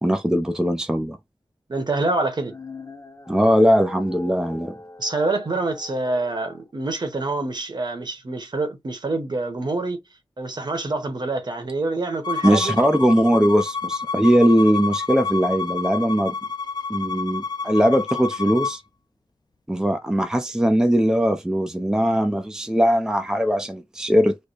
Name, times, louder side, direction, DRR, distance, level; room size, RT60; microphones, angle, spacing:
voice 1, 0.0-1.2 3.3-4.7 12.4-16.3 16.9-18.8 19.7-24.4, equal, 5° right, 0.6 m, -20 dB
voice 2, 1.7-2.5 5.0-10.0 10.4-12.8, right 2 dB, 55° right, 1.1 m, -26 dB
sound 1, 2.3-6.6, left 2 dB, 30° left, 1.1 m, -41 dB
Bowed string instrument, 12.2-18.8, left 5 dB, 50° left, 0.4 m, -29 dB
3.3 x 2.1 x 4.1 m
wide cardioid pair, 100°, 9 cm